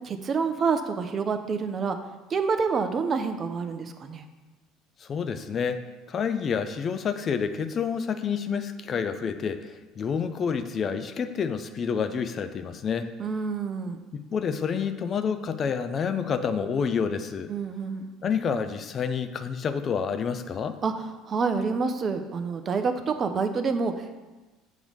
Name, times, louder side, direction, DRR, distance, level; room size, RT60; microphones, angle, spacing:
voice 1, 0.0-2.0 2.3-4.2 13.2-14.0 17.5-18.1 20.8-24.2, right 5 dB, 40° right, 8 dB, 0.6 m, -28 dB
voice 2, 5.0-5.8 6.1-13.1 14.1-17.5 18.2-20.8, left 6 dB, 40° left, 9 dB, 0.4 m, -28 dB
7.0 x 3.1 x 5.3 m, 1.2 s
hypercardioid pair, 65°, 0 cm